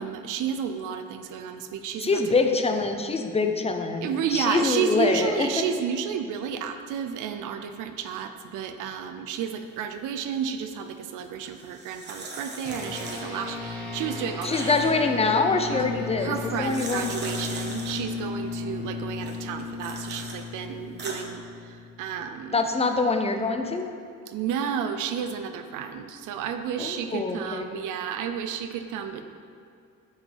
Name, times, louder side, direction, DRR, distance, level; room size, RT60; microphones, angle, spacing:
voice 1, 0.0-2.2 4.0-14.9 15.7-15.9 16.2-22.6 24.3-29.2, right 7 dB, 90° right, 8 dB, 0.5 m, -31 dB
voice 2, 2.0-5.5 14.4-17.1 22.5-23.9 26.8-27.7, left 3 dB, 20° left, 5 dB, 0.6 m, -25 dB
sound 1, 11.4-13.6 14.0-15.1 16.3-18.0 19.2-20.4 20.8-21.2, right 2 dB, 35° right, 1.2 m, -39 dB
sound 2, 12.6-22.4, left 4 dB, 90° left, 1.7 m, -35 dB
9.0 x 5.1 x 3.4 m, 2.4 s
cardioid pair, 90°, 30 cm